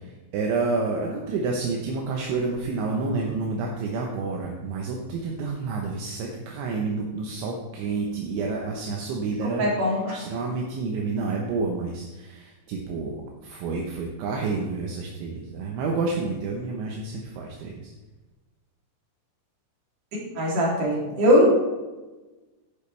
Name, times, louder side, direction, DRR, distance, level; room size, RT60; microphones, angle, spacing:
voice 1, 0.0-13.2 13.4-17.9, right 4 dB, 75° right, 0 dB, 3.3 m, -29 dB
voice 2, 9.6-10.2 20.4-21.5, equal, 45° right, -3 dB, 4.2 m, -20 dB
14.0 x 10.5 x 3.4 m, 1.2 s
omnidirectional pair, 5.6 m